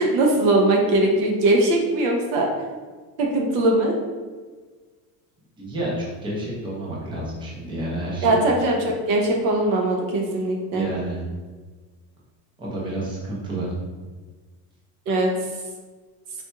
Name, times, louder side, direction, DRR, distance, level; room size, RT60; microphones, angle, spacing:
voice 1, 0.0-2.5 3.2-3.9 8.2-10.9 15.1-15.3, right 2 dB, 60° right, 1 dB, 0.7 m, -20 dB
voice 2, 5.6-8.4 10.7-11.2 12.6-13.7, right 1 dB, 10° right, -5 dB, 0.7 m, -29 dB
4.2 x 2.8 x 2.2 m, 1.4 s
cardioid pair, 140°, 44 cm